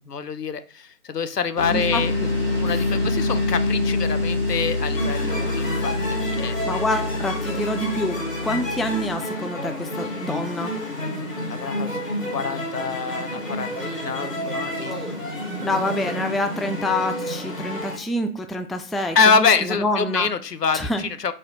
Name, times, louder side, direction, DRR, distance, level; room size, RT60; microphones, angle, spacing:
voice 1, 0.1-2.1 2.6-6.6 11.2-14.9 19.2-21.3, left 5 dB, 85° left, 11 dB, 0.6 m, -25 dB
sound 1, 1.6-9.2, left 2 dB, 40° left, 1.2 m, -25 dB
voice 2, 1.7-2.3 6.6-10.7 14.9-15.1 15.6-20.3 20.7-21.0, left 1 dB, ahead, 7 dB, 0.3 m, -27 dB
sound 2, 5.0-18.0, equal, 55° left, 1.9 m, -30 dB
4.2 x 2.4 x 4.1 m, 0.40 s
figure-of-eight pair, 180°, 47 cm